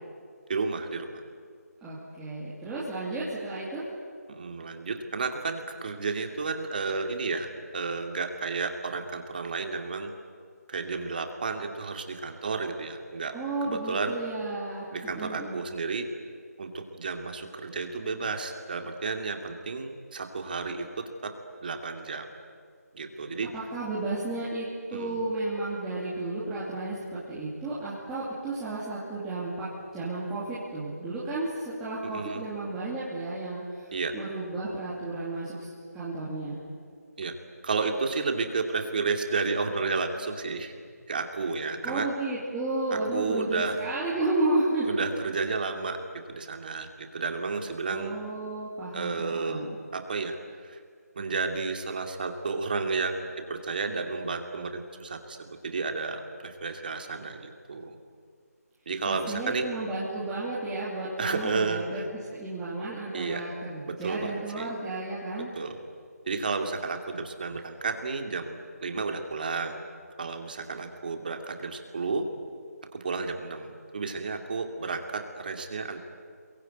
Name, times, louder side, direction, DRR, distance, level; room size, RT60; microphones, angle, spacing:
voice 1, 0.5-1.2 4.3-10.1 10.7-13.3 13.6-14.2 14.9-16.1 16.6-21.3 21.6-22.3 22.9-23.5 24.9-25.2 32.0-32.4 33.9-34.2 37.2-37.4 37.6-40.7 41.1-42.1 42.9-43.8 44.8-46.0 46.3-48.1 48.9-49.7 49.9-50.8 51.1-58.0 58.9-59.7 61.2-62.1 63.1-63.4 63.9-64.7 65.5-65.8 66.3-69.8 70.2-72.2 72.9-76.0, right 4 dB, 35° right, 5 dB, 2.6 m, -32 dB
voice 2, 1.8-3.9 13.3-15.6 23.5-33.9 34.1-36.6 41.8-45.0 47.9-49.8 59.0-62.0 62.3-65.5, right 2 dB, 5° right, -11 dB, 2.7 m, -32 dB
27.0 x 23.0 x 9.3 m, 2.1 s
figure-of-eight pair, 170°, 9 cm